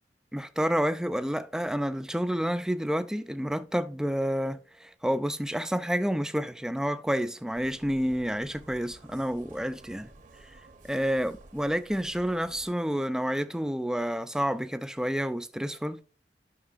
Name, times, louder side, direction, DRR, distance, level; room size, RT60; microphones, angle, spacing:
voice 1, 0.3-10.1 10.4-10.6 10.8-16.0, equal, 5° right, 0.4 m, -29 dB
sound 1, 7.5-12.7, right 2 dB, 45° right, 0.8 m, -53 dB
12.5 x 5.9 x 2.5 m
head